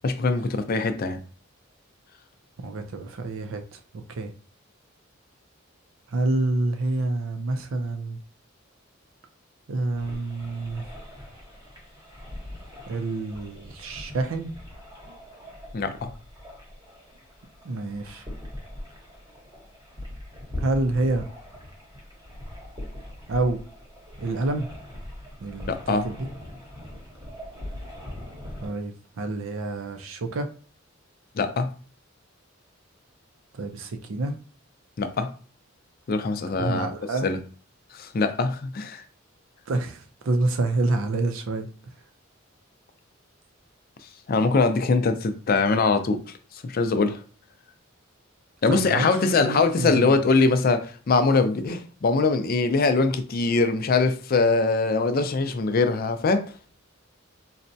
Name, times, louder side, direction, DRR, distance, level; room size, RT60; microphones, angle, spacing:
voice 1, 0.0-1.2 15.7-16.1 25.7-26.0 31.4-31.7 35.0-35.3 36.1-36.9 37.2-37.4 37.9-39.0 44.3-46.2 46.5-47.2 48.6-56.4, left 3 dB, 45° left, 0.4 m, -22 dB
voice 2, 2.6-3.8 4.1-4.3 6.1-8.2 9.7-10.8 12.9-14.5 17.6-18.2 20.6-21.3 23.3-23.6 24.2-24.7 25.4-26.3 28.6-30.5 33.5-34.4 36.5-37.3 39.7-41.7 48.7-49.1 49.4-50.2, right 2 dB, 75° right, 0.5 m, -28 dB
sound 1, 10.0-28.7, left 1 dB, 20° right, 0.9 m, -41 dB
4.0 x 2.2 x 2.6 m
head